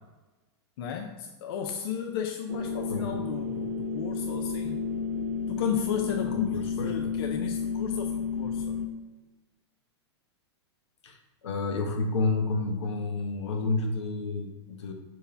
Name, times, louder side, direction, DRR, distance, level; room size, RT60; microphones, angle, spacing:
voice 1, 0.8-4.8 5.5-8.8, left 8 dB, 60° left, 5 dB, 0.5 m, -34 dB
sound 1, 2.5-8.9, left 5 dB, 65° right, 1.0 m, -31 dB
voice 2, 6.2-6.9 11.0-11.2 11.4-14.9, left 3 dB, 85° left, 4 dB, 1.2 m, -30 dB
5.6 x 4.6 x 4.3 m, 1.1 s
supercardioid pair, 145°, 14 cm